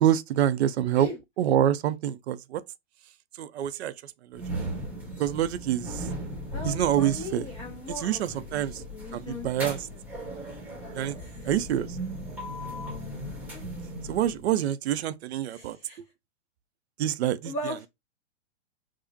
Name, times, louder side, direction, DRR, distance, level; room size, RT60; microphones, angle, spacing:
voice 1, 0.0-1.1 1.4-2.6 3.4-3.9 4.3-4.4 5.2-6.0 6.6-7.4 7.9-8.8 9.1-9.8 10.9-11.2 11.5-11.9 14.1-15.8 17.0-17.5, right 11 dB, 60° right, 0.5 m, -26 dB
sound 1, 4.3-14.5, right 1 dB, 5° right, 0.9 m, -37 dB
voice 2, 6.5-8.6 8.9-10.0 11.2-11.5 13.5-13.6 15.5-16.0 17.4-17.9, left 2 dB, 20° left, 0.5 m, -39 dB
5.0 x 2.0 x 2.7 m
hypercardioid pair, 140°, 38 cm